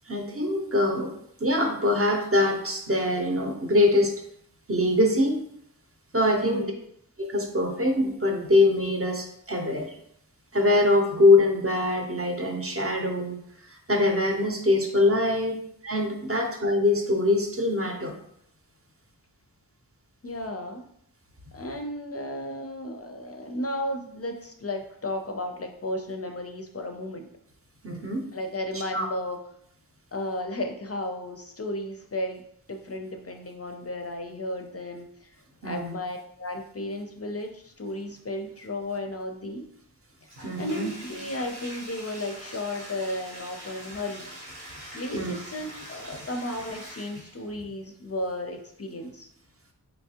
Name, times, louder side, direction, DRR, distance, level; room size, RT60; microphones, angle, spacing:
voice 1, 0.1-1.1 1.4-4.1 4.7-5.4 6.1-6.7 7.2-9.9 10.5-13.4 13.9-18.1 27.8-28.3 28.9-29.1 35.6-35.9 40.4-40.9 45.1-45.3, left 2 dB, 35° right, 2 dB, 0.6 m, -23 dB
voice 2, 6.3-6.7 20.2-20.8 21.5-27.3 28.3-29.4 30.1-32.4 32.7-35.3 35.6-39.7 40.5-44.3 44.9-49.3, left 1 dB, 40° left, 4 dB, 0.4 m, -34 dB
Bathtub (filling or washing), 40.2-47.5, right 1 dB, 85° right, 1.0 m, -43 dB
3.4 x 3.0 x 2.8 m, 0.70 s
wide cardioid pair, 55°, 38 cm